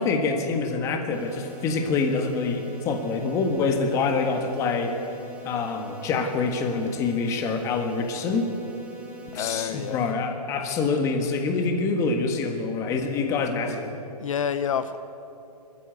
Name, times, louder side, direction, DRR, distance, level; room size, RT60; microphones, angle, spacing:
voice 1, 0.0-5.0 5.4-8.5 9.3-13.9, left 4 dB, 15° left, 5 dB, 1.5 m, -26 dB
sound 1, 1.1-10.1, right 1 dB, 5° right, 1.6 m, -44 dB
voice 2, 9.3-10.0 14.2-15.0, left 7 dB, 55° left, 11 dB, 0.8 m, -28 dB
24.5 x 14.5 x 8.1 m, 2.9 s
hypercardioid pair, 165°, 20 cm